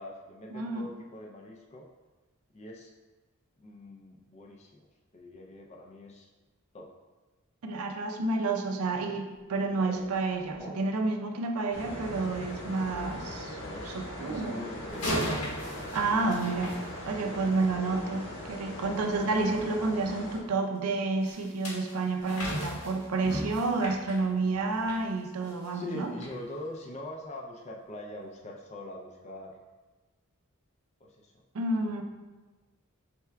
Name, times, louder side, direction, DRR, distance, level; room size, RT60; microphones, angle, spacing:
voice 1, 0.0-1.9 2.5-2.9 3.6-4.9 5.1-6.3 6.7-6.9 13.5-15.4 25.7-29.6 31.0-31.3 31.8-32.0, left 1 dB, 30° left, 0 dB, 0.4 m, -43 dB
voice 2, 0.5-0.9 7.6-13.6 13.8-14.7 15.9-16.8 17.1-26.1 31.5-32.0, right 3 dB, 85° right, 4 dB, 0.5 m, -30 dB
sound 1, 9.3-11.2, right 2 dB, 10° right, 0.7 m, -48 dB
sound 2, 11.7-20.4, equal, 55° left, 0.8 m, -40 dB
sound 3, 14.9-17.5 21.2-25.0 25.4-25.7 26.2-26.3, equal, 90° left, 1.2 m, -36 dB
5.6 x 3.4 x 2.2 m, 1.2 s
head